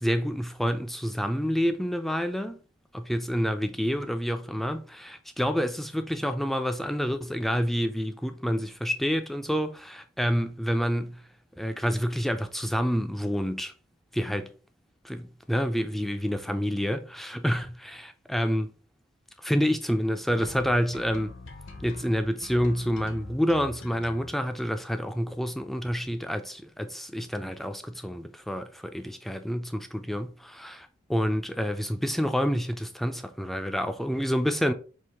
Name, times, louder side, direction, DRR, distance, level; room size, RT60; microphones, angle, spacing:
voice 1, 0.0-2.6 2.9-11.2 11.6-13.7 14.1-14.5 15.0-18.7 19.4-21.4 21.8-34.7, equal, ahead, 0.3 m, -28 dB
sound 1, 20.3-24.3, left 2 dB, 75° left, 0.8 m, -44 dB
4.6 x 2.5 x 3.4 m
head